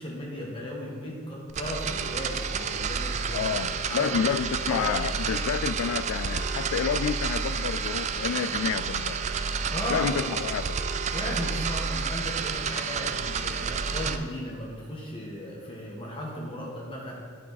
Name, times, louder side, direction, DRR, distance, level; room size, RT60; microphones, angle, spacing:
voice 1, 0.0-4.4 4.7-4.9 9.7-10.1 11.1-17.2, equal, 25° left, -3 dB, 1.5 m, -36 dB
sound 1, 1.5-14.2, right 5 dB, 35° right, 0.3 m, -30 dB
voice 2, 3.3-9.2 9.9-10.8, left 7 dB, 85° left, 14 dB, 0.3 m, -29 dB
11.5 x 4.8 x 4.1 m, 2.4 s
head